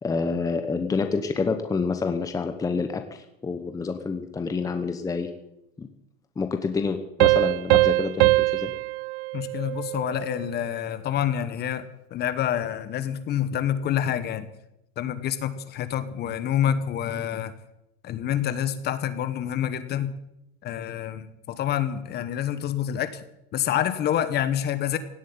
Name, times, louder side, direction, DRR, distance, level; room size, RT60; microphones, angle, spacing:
voice 1, 0.0-5.3 5.8-5.9 6.4-8.7, left 4 dB, 10° left, 7 dB, 1.0 m, -28 dB
Piano, 7.2-10.5, right 22 dB, 65° right, 0.5 m, -22 dB
voice 2, 9.3-14.5 15.0-17.5 18.0-20.1 20.6-23.2 23.5-25.0, left 10 dB, 30° left, 13 dB, 1.2 m, -27 dB
17.0 x 7.6 x 9.6 m, 0.84 s
supercardioid pair, 140°, 32 cm